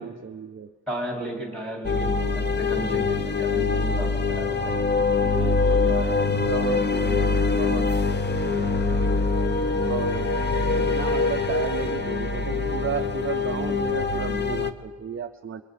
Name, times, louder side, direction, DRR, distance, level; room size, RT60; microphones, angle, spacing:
voice 1, 0.0-0.7 1.2-1.3 5.2-8.4 9.9-10.4 10.8-15.6, right 7 dB, 30° right, 6 dB, 0.5 m, -33 dB
voice 2, 0.9-4.8, equal, 5° left, -2 dB, 4.3 m, -34 dB
sound 1, 1.8-14.7, left 4 dB, 25° left, 0.7 m, -24 dB
30.0 x 22.0 x 4.1 m, 1.5 s
wide cardioid pair, 175°, 42 cm